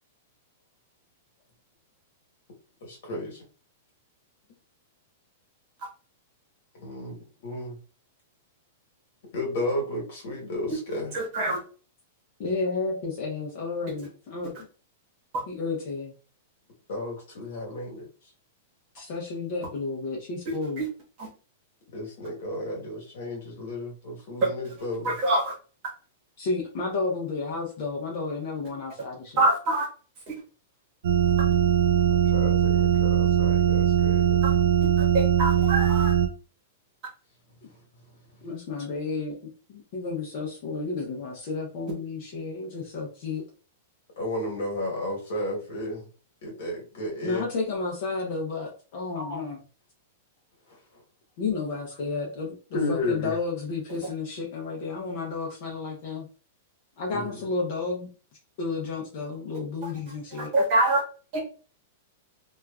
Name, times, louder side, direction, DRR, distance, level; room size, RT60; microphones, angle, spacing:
voice 1, 2.8-3.4 6.8-7.8 9.3-11.1 16.9-18.1 21.9-25.2 32.1-34.3 44.2-46.1 46.4-47.4 49.1-49.5 50.7-50.8 52.7-53.4 57.1-57.4, left 1 dB, 60° left, 0 dB, 1.2 m, -33 dB
voice 2, 11.1-11.6 20.8-20.9 21.2-21.3 25.0-25.5 29.4-29.9 30.3-30.4 34.4-34.5 35.1-36.1 60.4-61.0 61.3-61.4, right 2 dB, 30° right, -2 dB, 1.0 m, -24 dB
voice 3, 12.4-14.7 15.5-16.1 18.9-20.8 26.4-29.4 37.6-37.7 38.4-43.4 47.2-49.6 51.4-56.3 57.0-58.1 58.6-60.5, left 4 dB, 40° left, -1 dB, 0.6 m, -32 dB
sound 1, 31.0-36.3, right 9 dB, 70° right, 0.4 m, -21 dB
3.0 x 2.3 x 2.3 m, 0.37 s
supercardioid pair, 170°, 0 cm